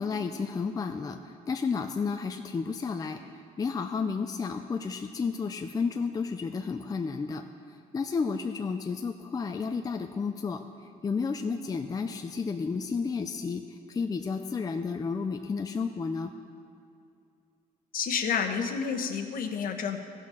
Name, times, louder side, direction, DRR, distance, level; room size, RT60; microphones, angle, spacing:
voice 1, 0.0-3.2 3.6-7.4 7.9-10.6 11.0-13.6 13.9-16.3, left 5 dB, 20° left, 6 dB, 0.5 m, -31 dB
voice 2, 17.9-20.0, left 6 dB, 55° left, 6 dB, 1.0 m, -29 dB
15.0 x 6.3 x 5.6 m, 2.5 s
cardioid pair, 110°, 17 cm